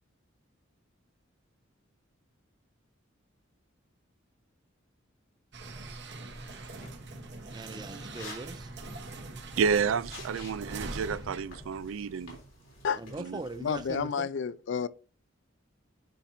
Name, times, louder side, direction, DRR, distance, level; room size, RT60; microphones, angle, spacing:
sound 1, 5.5-12.5, right 2 dB, 60° right, 1.2 m, -43 dB
sound 2, 6.3-14.0, left 2 dB, 90° left, 3.6 m, -51 dB
voice 1, 7.5-8.7 13.0-14.3, right 2 dB, 20° right, 0.5 m, -40 dB
voice 2, 9.6-12.4 13.2-13.4, right 6 dB, 80° right, 0.4 m, -30 dB
voice 3, 13.6-14.9, left 6 dB, 65° left, 0.4 m, -30 dB
9.1 x 4.3 x 2.7 m
head